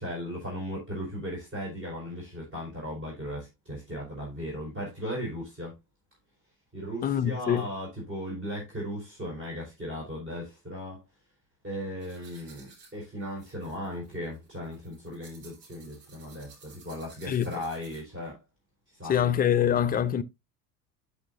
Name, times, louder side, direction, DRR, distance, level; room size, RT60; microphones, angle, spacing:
voice 1, 0.0-5.7 6.7-11.0 11.6-18.4 18.9-20.0, equal, 25° right, 4.7 m, -37 dB
voice 2, 7.0-7.7 17.3-17.6 19.1-20.2, left 9 dB, 20° left, 0.4 m, -25 dB
sound 1, 12.0-18.3, right 4 dB, 75° right, 4.0 m, -55 dB
12.0 x 5.6 x 2.6 m
hypercardioid pair, 70°, 48 cm